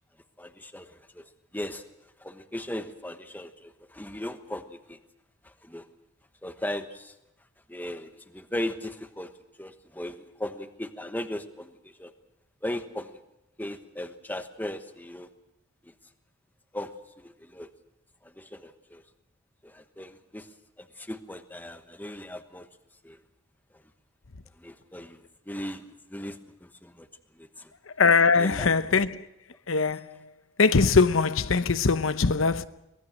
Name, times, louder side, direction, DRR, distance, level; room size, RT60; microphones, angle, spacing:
voice 1, 0.4-1.2 1.5-1.8 2.2-5.0 5.6-5.8 6.4-7.1 7.7-9.3 9.6-12.1 12.6-13.1 13.6-15.3 15.9-16.0 16.7-16.9 17.2-17.7 18.2-19.0 19.6-20.5 20.8-22.7 23.0-23.2 24.6-27.1 27.4-27.7 28.3-28.8, left 1 dB, 10° left, 1.1 m, -37 dB
voice 2, 28.0-29.1 29.7-30.0 30.6-32.7, left 4 dB, 80° left, 0.8 m, -21 dB
24.0 x 19.5 x 6.3 m
head